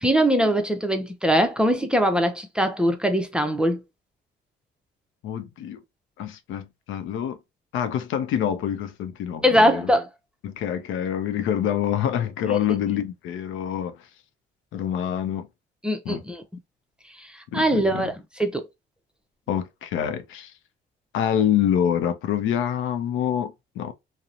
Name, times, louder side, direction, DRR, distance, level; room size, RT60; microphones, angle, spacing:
voice 1, 0.0-3.8 9.4-10.1 12.5-12.6 15.8-16.4 17.2-18.7, equal, 5° right, 0.5 m, -22 dB
voice 2, 5.2-5.8 6.2-7.4 7.7-9.9 10.4-14.0 14.7-15.5 16.1-16.2 17.5-18.1 19.5-20.5 21.1-23.9, left 9 dB, 85° left, 0.5 m, -26 dB
2.8 x 2.0 x 2.4 m
cardioid pair, 90°, 20 cm